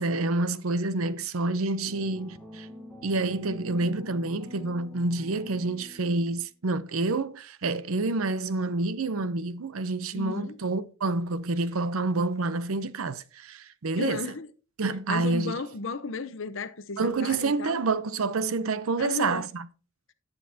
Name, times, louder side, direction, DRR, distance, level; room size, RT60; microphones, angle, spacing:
voice 1, 0.0-2.7 3.0-14.2 14.8-15.6 17.0-19.7, right 3 dB, 80° right, 0.7 m, -28 dB
sound 1, 1.8-6.4, left 1 dB, ahead, 1.2 m, -46 dB
voice 2, 10.1-10.6 13.9-14.5 15.1-17.8 19.0-19.5, left 3 dB, 65° left, 0.7 m, -34 dB
17.5 x 6.5 x 2.7 m
head